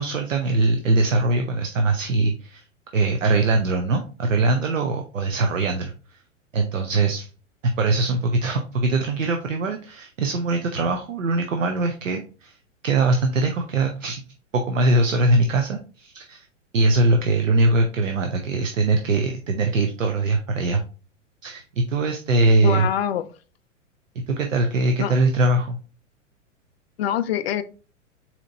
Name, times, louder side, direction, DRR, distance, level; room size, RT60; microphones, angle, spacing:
voice 1, 0.0-2.6 2.9-5.9 6.5-7.3 7.8-12.6 12.8-14.2 14.5-16.4 16.7-20.8 21.4-22.9 24.3-25.8, right 2 dB, 80° right, 5 dB, 0.6 m, -22 dB
voice 2, 22.6-23.3 25.0-25.1 27.0-27.6, left 10 dB, 55° left, 12 dB, 0.4 m, -24 dB
4.1 x 2.8 x 2.7 m, 0.36 s
figure-of-eight pair, 100°, 39 cm